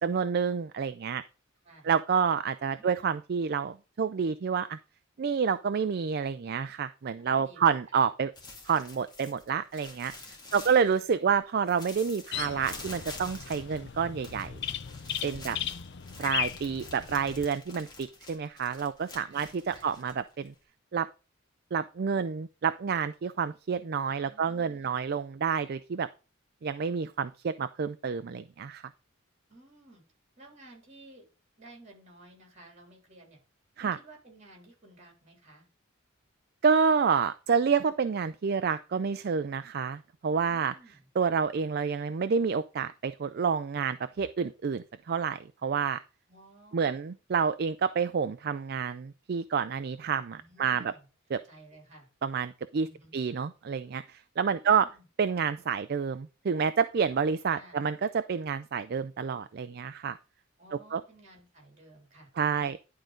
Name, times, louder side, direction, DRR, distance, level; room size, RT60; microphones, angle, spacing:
voice 1, 0.0-1.2 1.8-4.8 5.2-8.3 8.7-10.1 10.5-14.6 15.2-15.6 16.2-20.5 20.9-21.1 21.7-26.1 26.6-28.8 33.8-34.0 36.6-40.7 41.2-46.0 46.7-50.9 51.3-51.4 52.2-52.9 53.1-54.9 55.2-60.2 60.9-61.0 62.4-62.8, right 6 dB, 50° right, 12 dB, 0.4 m, -28 dB
voice 2, 7.2-7.7 10.4-11.3 15.4-15.7 19.2-20.1 24.1-25.0 29.5-30.0 30.4-31.2 31.6-33.4 33.8-35.7 40.5-41.1 46.3-47.0 50.3-51.1 51.4-52.1 52.8-53.2 54.5-55.1 57.5-57.8 60.6-62.7, right 2 dB, 35° right, 2 dB, 3.6 m, -55 dB
sound 1, 8.3-11.3 11.6-20.6, left 3 dB, 20° left, 1.9 m, -48 dB
sound 2, 12.3-17.5, left 9 dB, 55° left, 0.6 m, -37 dB
11.0 x 3.8 x 5.2 m, 0.32 s
head